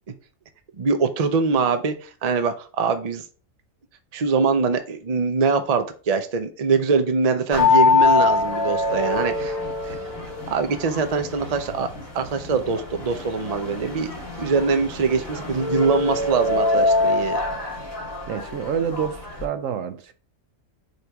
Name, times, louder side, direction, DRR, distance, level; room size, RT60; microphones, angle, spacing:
voice 1, 0.8-3.2 4.1-9.6 9.9-10.0 10.5-11.9 12.1-17.4, right 4 dB, 35° right, 0.7 m, -23 dB
sound 1, 7.5-19.4, left 3 dB, 75° left, 2.5 m, -24 dB
voice 2, 18.3-20.1, right 7 dB, 70° right, 1.0 m, -28 dB
6.7 x 4.4 x 3.5 m
omnidirectional pair, 1.4 m